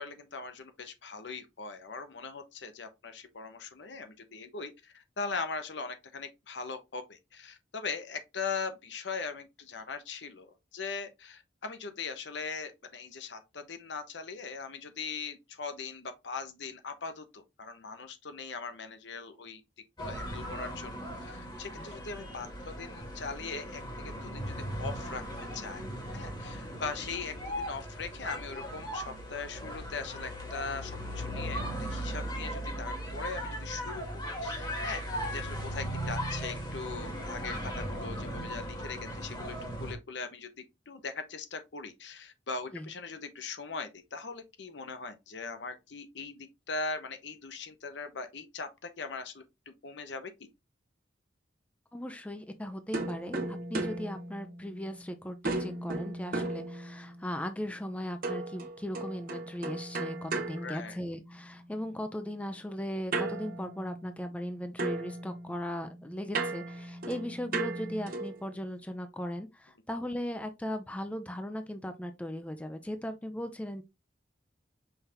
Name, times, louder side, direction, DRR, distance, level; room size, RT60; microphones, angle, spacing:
voice 1, 0.0-19.6 20.0-20.9 21.2-25.2 25.5-25.8 26.1-35.0 35.3-40.5 40.9-49.4 49.8-50.5 60.6-61.0, left 4 dB, 70° left, 0.8 m, -40 dB
sound 1, 20.0-39.9, equal, 25° left, 1.5 m, -38 dB
voice 2, 51.9-73.8, equal, 5° left, 0.4 m, -38 dB
sound 2, 52.9-55.0 55.4-57.3 58.2-61.5 63.1-64.5 64.8-68.5, right 2 dB, 50° right, 0.9 m, -36 dB
5.6 x 2.8 x 3.4 m
head